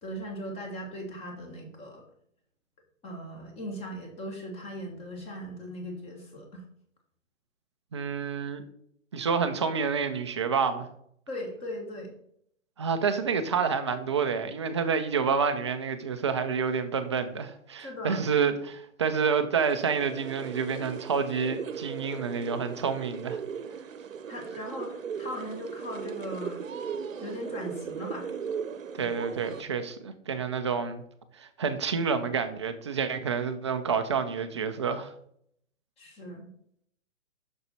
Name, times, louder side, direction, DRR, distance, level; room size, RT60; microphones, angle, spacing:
voice 1, 0.0-2.0 3.0-6.6 11.3-12.1 17.8-18.3 24.3-26.6 27.2-28.3 29.0-29.1 36.0-36.5, equal, 15° left, 1.5 m, -38 dB
voice 2, 7.9-8.6 9.1-10.9 12.8-23.4 29.0-31.0 31.4-35.1, right 6 dB, 25° right, 0.4 m, -28 dB
sound 1, 19.6-29.6, right 6 dB, 75° right, 0.8 m, -38 dB
6.5 x 6.2 x 4.2 m
hypercardioid pair, 135°, 39 cm